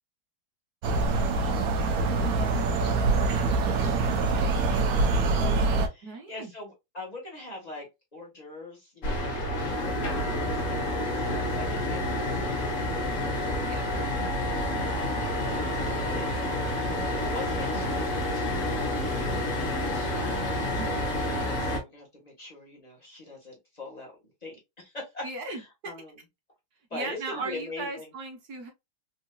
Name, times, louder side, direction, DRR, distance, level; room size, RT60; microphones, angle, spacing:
sound 1, 0.8-5.9, right 3 dB, 80° right, 0.8 m, -24 dB
voice 1, 1.1-12.3 14.3-15.1 15.7-16.6 16.9-18.5 18.9-20.3 20.6-20.7 21.6-24.1 24.4-26.1 26.9-28.1, left 2 dB, 25° left, 1.2 m, -44 dB
voice 2, 6.0-6.5 13.6-13.9 15.9-16.3 20.8-21.2 25.2-25.9 26.9-28.7, right 3 dB, 60° right, 1.1 m, -38 dB
sound 2, 9.0-21.8, left 1 dB, 50° left, 1.1 m, -29 dB
3.9 x 2.7 x 2.2 m
omnidirectional pair, 2.3 m